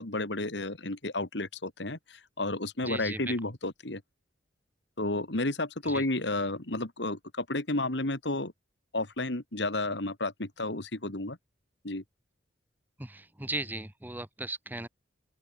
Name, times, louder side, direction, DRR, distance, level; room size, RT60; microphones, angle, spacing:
voice 1, 0.0-4.0 5.0-8.5 8.9-11.4 11.8-12.0, left 2 dB, 65° left, 2.6 m, -32 dB
voice 2, 2.8-3.3 5.8-6.0 13.0-14.9, right 2 dB, 10° right, 1.3 m, -37 dB
open air
head